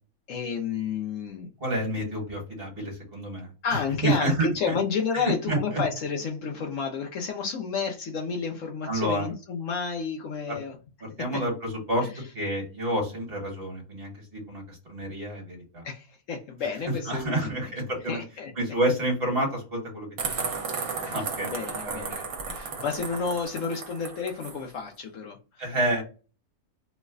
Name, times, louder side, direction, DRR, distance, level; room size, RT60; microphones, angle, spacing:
voice 1, 0.3-1.5 3.6-10.8 11.3-11.4 12.0-12.1 15.8-17.6 18.1-18.5 21.1-25.6, left 5 dB, 65° left, 0.9 m, -31 dB
voice 2, 1.6-3.5 4.0-4.8 5.1-5.8 8.9-9.3 10.5-10.6 11.0-12.1 12.3-15.8 17.1-18.2 18.6-20.4 21.0-21.5 21.8-22.3 25.6-26.0, right 1 dB, 40° right, 1.5 m, -29 dB
sound 1, 20.2-24.6, right 4 dB, 70° right, 1.2 m, -34 dB
3.1 x 2.1 x 3.5 m
omnidirectional pair, 1.6 m